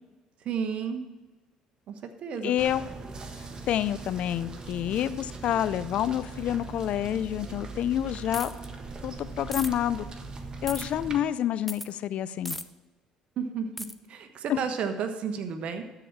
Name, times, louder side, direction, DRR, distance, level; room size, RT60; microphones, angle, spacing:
voice 1, 0.4-1.1 1.9-2.5 13.4-13.7 14.1-15.8, right 6 dB, 60° right, 7 dB, 1.2 m, -32 dB
voice 2, 2.4-2.8 3.7-8.5 9.0-10.1 10.6-12.6 14.5-14.6, left 11 dB, 60° left, 15 dB, 0.5 m, -28 dB
sound 1, 2.6-11.2, right 3 dB, 35° right, 1.4 m, -40 dB
sound 2, 8.3-8.7 9.5-9.7 10.7-10.9 11.7-11.9 12.5-12.6 13.8-13.9, left 1 dB, 5° left, 0.7 m, -36 dB
13.0 x 5.0 x 7.2 m, 1.2 s
hypercardioid pair, 65°, 2 cm